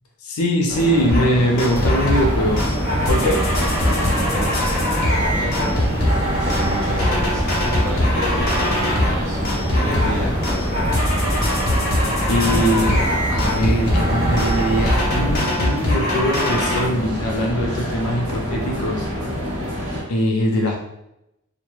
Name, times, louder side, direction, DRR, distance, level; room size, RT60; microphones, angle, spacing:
voice 1, 0.2-2.8 3.1-3.4 12.3-19.1 20.1-20.8, equal, 85° left, 0 dB, 0.5 m, -22 dB
sound 1, 0.7-20.0, equal, 65° right, 0.8 m, -27 dB
sound 2, 1.1-1.3 1.6-2.3 2.6-9.2 9.4-10.2 10.4-16.8, left 1 dB, 45° left, 0.7 m, -23 dB
sound 3, 1.7-15.4, equal, 35° right, 0.7 m, -25 dB
voice 2, 3.8-4.8 5.3-7.4 7.8-9.4 9.7-11.0, equal, 5° left, -7 dB, 0.5 m, -32 dB
2.1 x 2.1 x 3.0 m, 0.85 s
head